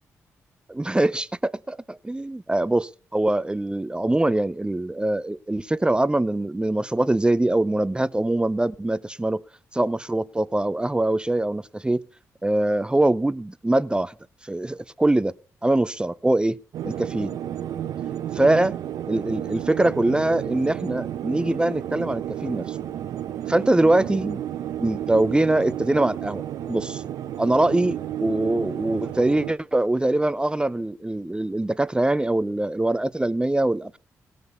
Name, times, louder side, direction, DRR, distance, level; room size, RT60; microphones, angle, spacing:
voice 1, 0.8-1.2 1.7-9.4 9.7-12.0 12.4-14.1 14.4-15.3 15.6-16.6 16.8-17.3 18.3-18.8 19.1-22.8 23.5-24.4 24.8-26.4 26.7-27.0 27.4-34.0, right 1 dB, 15° right, 0.6 m, -23 dB
sound 1, 16.7-29.5, right 11 dB, 80° right, 1.0 m, -32 dB
20.0 x 6.7 x 5.4 m
supercardioid pair, 55°, 6 cm